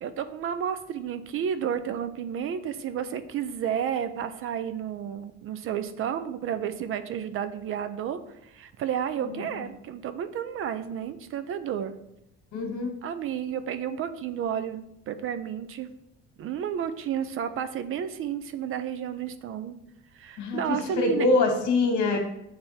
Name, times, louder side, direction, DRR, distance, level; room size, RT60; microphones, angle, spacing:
voice 1, 0.0-12.0 13.0-15.9 16.4-19.8 20.1-21.3, right 8 dB, 50° right, 11 dB, 0.5 m, -31 dB
voice 2, 12.5-12.9 20.4-22.2, left 3 dB, 75° left, 3 dB, 1.6 m, -24 dB
8.7 x 3.4 x 4.2 m, 0.80 s
cardioid pair, 175°, 29 cm